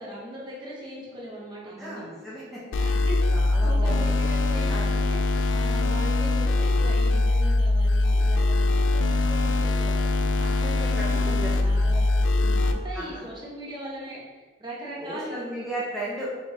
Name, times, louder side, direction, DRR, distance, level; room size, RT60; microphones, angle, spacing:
voice 1, 0.0-2.0 2.8-15.6, right 1 dB, 25° right, -5 dB, 1.0 m, -40 dB
voice 2, 1.8-2.6 2.9-4.2 4.7-4.9 11.0-11.5 12.9-13.2 15.0-16.3, right 1 dB, ahead, -9 dB, 0.7 m, -35 dB
sound 1, 2.7-12.7, left 2 dB, 85° left, 0.3 m, -22 dB
4.8 x 3.2 x 2.7 m, 1.4 s
head